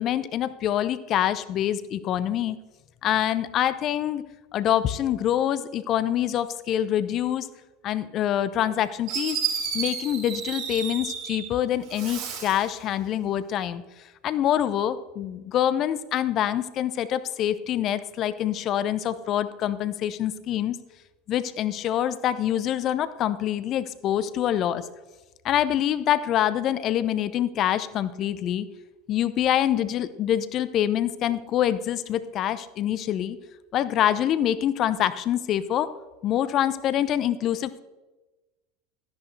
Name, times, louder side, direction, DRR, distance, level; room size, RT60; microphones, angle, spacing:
voice 1, 0.0-2.6 3.0-4.2 4.5-7.5 7.8-9.4 9.7-13.8 14.2-20.8 21.3-24.9 25.4-28.7 29.1-33.4 33.7-35.9 36.2-37.8, left 11 dB, 45° left, 14 dB, 0.7 m, -25 dB
Fireworks, 8.7-8.8 9.1-11.5 11.9-12.7, right 7 dB, 55° right, 3.5 m, -31 dB
13.0 x 10.5 x 3.3 m, 1.1 s
figure-of-eight pair, 80°, 0 cm